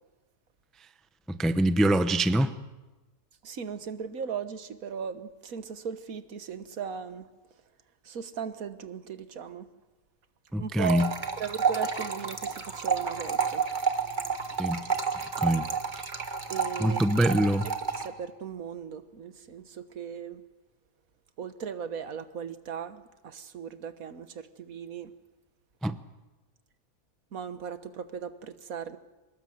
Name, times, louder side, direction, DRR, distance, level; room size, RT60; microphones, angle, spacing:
voice 1, 1.3-2.5 10.5-11.1 14.6-14.9 15.4-15.7 16.8-17.7 25.8-25.9, right 1 dB, ahead, 11 dB, 0.6 m, -24 dB
voice 2, 3.4-7.2 8.0-9.7 10.6-11.1 11.4-13.6 16.5-17.0 18.0-20.4 21.4-25.1 27.3-29.0, right 7 dB, 70° right, 11 dB, 1.6 m, -37 dB
sound 1, 10.8-18.1, right 5 dB, 35° right, 1.6 m, -30 dB
24.5 x 20.5 x 7.8 m, 1.2 s
omnidirectional pair, 1.5 m